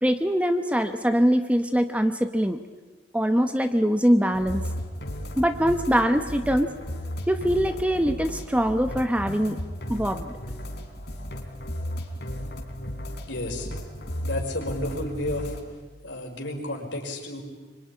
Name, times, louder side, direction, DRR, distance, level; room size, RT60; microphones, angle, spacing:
voice 1, 0.0-2.6 3.1-4.6 5.3-6.7 7.3-9.6 9.9-10.3, equal, 5° right, 8 dB, 0.9 m, -23 dB
sound 1, 4.3-15.6, equal, 55° left, 3.8 m, -35 dB
voice 2, 13.3-13.7 14.2-15.6 16.0-17.4, left 1 dB, 75° left, 2 dB, 5.3 m, -31 dB
24.5 x 24.5 x 9.8 m, 1.3 s
head